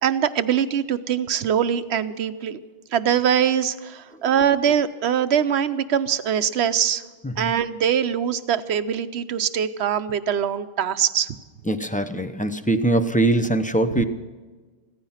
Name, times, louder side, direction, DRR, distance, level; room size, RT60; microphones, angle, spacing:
voice 1, 0.0-2.6 2.9-7.0 7.4-11.3 13.9-14.0, right 8 dB, 90° right, 12 dB, 1.0 m, -22 dB
voice 2, 11.7-14.0, right 1 dB, 10° left, 9 dB, 0.7 m, -22 dB
16.0 x 15.0 x 5.7 m, 1.3 s
omnidirectional pair, 1.1 m